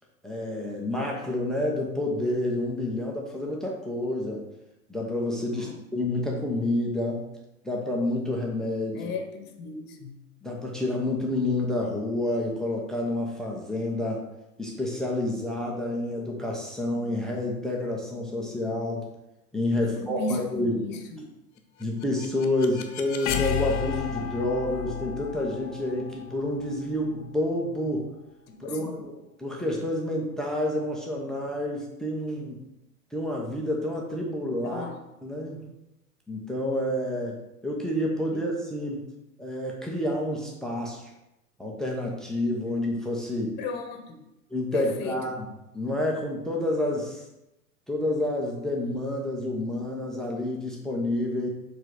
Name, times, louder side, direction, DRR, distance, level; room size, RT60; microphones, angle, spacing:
voice 1, 0.2-4.4 4.9-7.2 7.6-9.1 10.4-14.2 14.6-19.1 19.5-20.8 21.8-28.1 28.6-32.6 33.1-34.8 35.2-35.6 36.3-37.3 37.6-39.0 39.4-41.0 41.6-43.6 44.5-45.5 45.7-47.2 47.9-51.5, left 1 dB, ahead, -1 dB, 0.5 m, -29 dB
voice 2, 5.4-5.8 8.9-10.2 19.7-21.3 28.5-28.9 34.6-35.0 38.3-38.4 43.6-44.2 44.7-45.2, left 3 dB, 20° left, 4 dB, 1.2 m, -36 dB
sound 1, 21.8-27.7, left 8 dB, 50° left, 1.0 m, -33 dB
7.3 x 3.3 x 5.0 m, 0.91 s
figure-of-eight pair, 105°, 47 cm